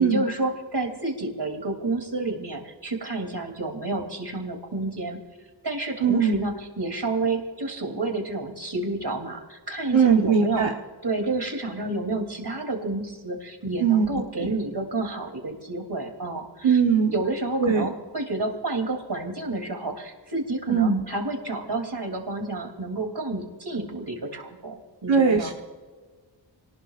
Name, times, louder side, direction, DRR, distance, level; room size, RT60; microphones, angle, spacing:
voice 1, 0.0-5.2 5.6-10.7 11.0-16.8 17.1-25.5, right 2 dB, 60° right, 3 dB, 3.1 m, -30 dB
voice 2, 6.0-6.5 9.9-10.7 13.8-14.5 16.6-17.1 17.6-17.9 20.7-21.0 25.1-25.5, right 6 dB, 90° right, 0 dB, 1.2 m, -20 dB
26.5 x 19.0 x 2.5 m, 1.4 s
wide cardioid pair, 50°, 45 cm